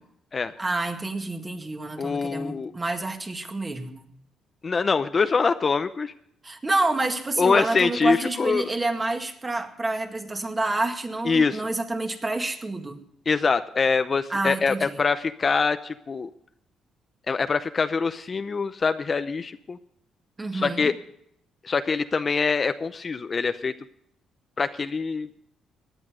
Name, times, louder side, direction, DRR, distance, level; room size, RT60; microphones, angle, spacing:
voice 1, 0.6-4.1 6.4-13.0 14.3-15.0 20.4-20.9, right 2 dB, 25° right, 5 dB, 1.9 m, -28 dB
voice 2, 2.0-2.7 4.6-6.1 7.4-8.7 11.3-11.6 13.3-16.3 17.3-19.8 20.5-20.9 21.6-23.7 24.6-25.3, left 5 dB, 35° left, 10 dB, 0.7 m, -24 dB
17.0 x 10.5 x 5.0 m, 0.71 s
cardioid pair, 90°, 0 cm